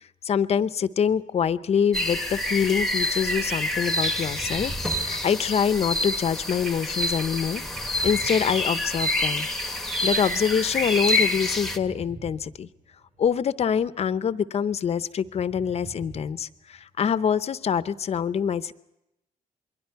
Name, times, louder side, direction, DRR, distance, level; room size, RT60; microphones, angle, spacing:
voice 1, 0.2-7.6 8.0-9.5 9.8-12.7 13.2-18.7, left 7 dB, 45° left, 14 dB, 0.7 m, -25 dB
sound 1, 1.9-11.8, left 1 dB, ahead, 1.0 m, -27 dB
sound 2, 4.2-6.0 7.5-9.4 11.5-13.2 15.2-16.5 16.8-16.9, right 3 dB, 45° right, 6.3 m, -43 dB
27.5 x 22.5 x 4.6 m, 0.86 s
cardioid pair, 125°, 15 cm